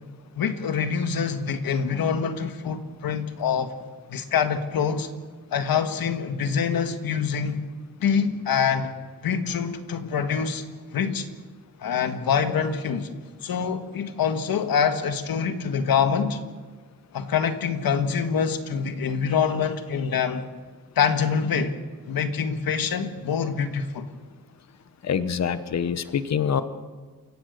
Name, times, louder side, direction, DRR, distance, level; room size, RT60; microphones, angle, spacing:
voice 1, 0.3-3.7 4.1-5.1 5.5-7.6 8.0-8.9 9.2-10.6 10.9-11.3 11.8-13.1 13.4-16.4 17.1-20.5 20.9-21.8 22.1-24.1, left 6 dB, 85° left, 8 dB, 1.7 m, -25 dB
voice 2, 25.0-26.6, left 7 dB, 50° left, 12 dB, 1.0 m, -25 dB
28.0 x 16.5 x 6.6 m, 1.4 s
wide cardioid pair, 160°, 35 cm